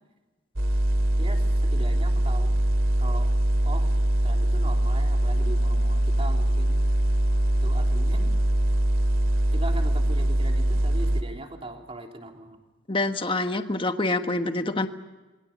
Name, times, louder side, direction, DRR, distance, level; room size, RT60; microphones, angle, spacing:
sound 1, 0.6-11.2, right 1 dB, 85° right, 2.4 m, -23 dB
voice 1, 1.2-2.5 3.0-3.4 3.6-3.9 4.2-6.9 7.6-8.3 9.5-12.6, right 1 dB, 30° right, 3 dB, 3.2 m, -39 dB
voice 2, 12.9-14.9, left 2 dB, 25° left, 7 dB, 1.4 m, -26 dB
27.0 x 22.5 x 7.3 m, 1.2 s
head